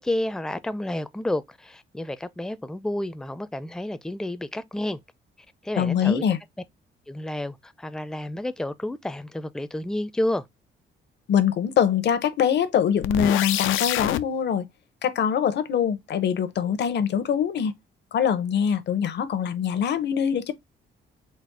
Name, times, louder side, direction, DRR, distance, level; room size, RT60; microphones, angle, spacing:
voice 1, 0.0-5.0 5.6-6.2 7.1-10.5, left 1 dB, 5° left, 0.4 m, -30 dB
voice 2, 5.8-6.4 11.3-14.6 15.0-17.7 18.1-20.5, left 8 dB, 60° left, 0.8 m, -23 dB
sound 1, 13.0-14.2, left 14 dB, 85° left, 0.4 m, -26 dB
4.2 x 2.1 x 4.6 m
cardioid pair, 90°, 20 cm